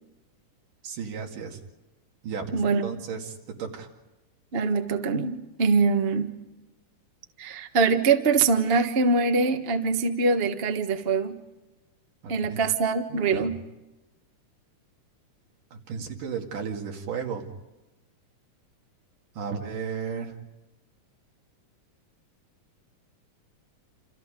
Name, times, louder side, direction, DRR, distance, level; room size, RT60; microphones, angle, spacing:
voice 1, 0.8-1.6 2.2-3.9 12.2-12.6 13.1-13.5 15.7-17.5 19.4-20.3, right 6 dB, 90° right, 2 dB, 3.9 m, -34 dB
voice 2, 2.5-3.0 4.5-6.3 7.4-11.4 12.3-13.6, right 4 dB, 60° right, 5 dB, 0.6 m, -23 dB
28.5 x 27.5 x 5.2 m, 1.0 s
omnidirectional pair, 3.6 m